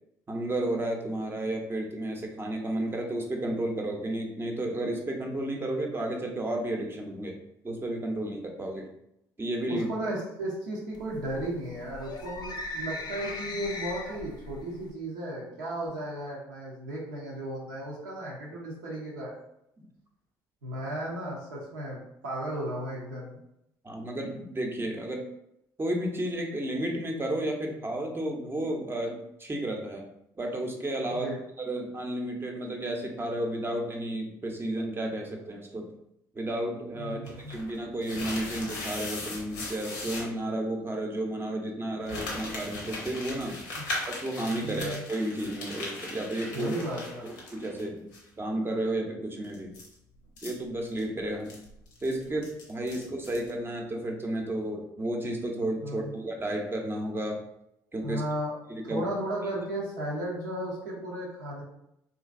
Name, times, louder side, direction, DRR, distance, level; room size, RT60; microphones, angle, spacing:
voice 1, 0.3-7.4 7.6-8.9 9.4-9.9 23.8-25.3 25.8-30.1 30.4-35.9 36.3-43.7 44.1-46.7 47.2-48.1 48.4-49.8 50.4-51.6 52.0-57.4 57.9-58.2 58.7-59.1, right 1 dB, 25° right, 2 dB, 0.6 m, -32 dB
voice 2, 9.7-19.3 20.6-23.4 31.1-31.4 37.0-37.6 43.8-43.9 44.6-45.0 46.5-47.3 55.8-56.1 58.0-58.5 58.8-61.6, right 1 dB, 85° right, -4 dB, 0.6 m, -35 dB
sound 1, 10.9-14.9, left 2 dB, 45° left, 0.5 m, -39 dB
sound 2, 37.3-40.3 42.1-47.8 48.1-48.2 49.4-53.5, left 2 dB, 85° left, 0.7 m, -39 dB
3.0 x 2.5 x 2.4 m, 0.80 s
hypercardioid pair, 50°, 10 cm